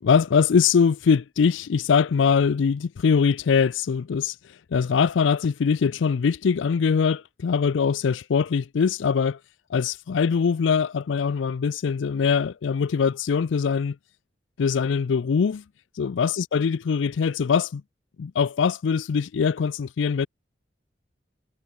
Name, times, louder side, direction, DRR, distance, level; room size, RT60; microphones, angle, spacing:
voice 1, 0.0-4.4 4.7-9.4 9.7-14.0 14.6-15.6 16.0-17.8 18.2-20.3, left 6 dB, 90° left, 0.4 m, -22 dB
head